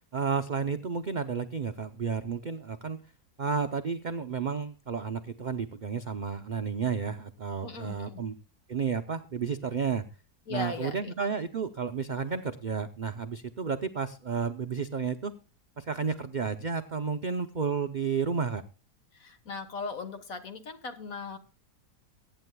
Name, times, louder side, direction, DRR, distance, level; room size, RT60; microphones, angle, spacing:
voice 1, 0.1-3.0 3.4-8.4 8.7-10.0 10.5-15.3 15.8-18.6, right 6 dB, 65° right, 8 dB, 0.4 m, -32 dB
voice 2, 7.6-8.2 10.5-10.9 19.2-21.4, left 3 dB, 60° left, 8 dB, 1.7 m, -38 dB
23.0 x 9.1 x 2.2 m, 0.33 s
omnidirectional pair, 1.7 m